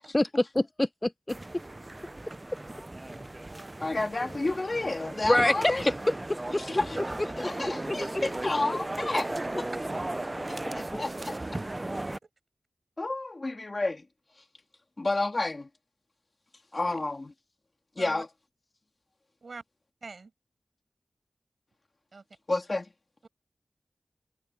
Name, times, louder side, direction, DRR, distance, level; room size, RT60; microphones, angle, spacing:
voice 1, 0.1-1.4 5.3-5.9 6.3-6.6 7.8-8.2, left 1 dB, 20° left, 1.0 m, -26 dB
sound 1, 1.3-12.2, right 2 dB, 25° right, 0.5 m, -36 dB
voice 2, 3.8-5.9 6.6-7.0 7.4-9.7 10.5-11.6 13.0-14.1 15.0-15.7 16.7-17.3 18.0-18.3 22.5-22.9, left 2 dB, 40° left, 2.4 m, -31 dB
voice 3, 20.0-20.3 22.1-22.2 23.2-23.3, right 4 dB, 65° right, 6.1 m, -44 dB
wide cardioid pair, 90°, 0 cm